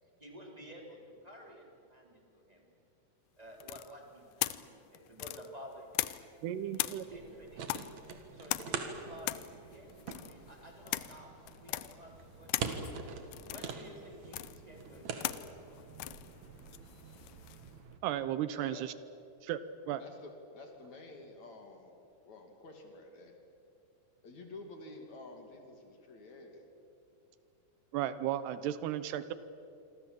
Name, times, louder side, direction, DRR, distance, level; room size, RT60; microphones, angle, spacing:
voice 1, 0.2-2.7 3.4-6.2 6.6-7.7 8.3-9.3 9.6-12.8 13.3-15.4, equal, 10° right, 0 dB, 3.5 m, -52 dB
sound 1, 3.6-6.4 6.7-17.7, left 16 dB, 85° left, 1.9 m, -40 dB
voice 2, 6.4-7.2 18.0-18.9 19.4-19.6 19.9-20.0 27.9-29.3, right 11 dB, 85° right, 13 dB, 3.0 m, -34 dB
sound 2, 7.1-18.0, right 5 dB, 55° right, 2.6 m, -44 dB
voice 3, 18.5-18.9 20.0-21.9 22.2-23.4 24.2-26.6, left 2 dB, 50° left, 3 dB, 3.6 m, -50 dB
27.5 x 24.5 x 7.7 m, 2.7 s
omnidirectional pair, 4.6 m